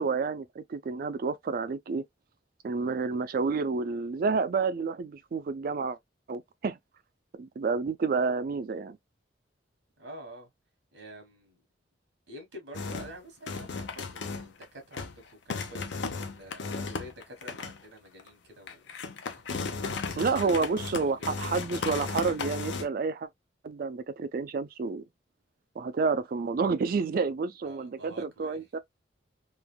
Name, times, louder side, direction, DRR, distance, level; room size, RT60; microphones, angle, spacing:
voice 1, 0.0-2.0 2.6-6.0 6.3-6.8 7.3-9.0 20.2-23.3 23.6-25.1 25.8-28.8, right 4 dB, 50° right, 0.3 m, -29 dB
voice 2, 10.0-10.5 10.9-11.6 12.3-18.8 19.5-19.8 20.3-20.5 27.6-28.6, right 1 dB, 90° right, 1.2 m, -48 dB
sound 1, 12.7-13.2 13.5-14.6 14.9-15.2 15.5-17.8 18.2-18.3 18.7-22.9, left 4 dB, 75° left, 0.5 m, -35 dB
3.2 x 2.1 x 2.2 m
head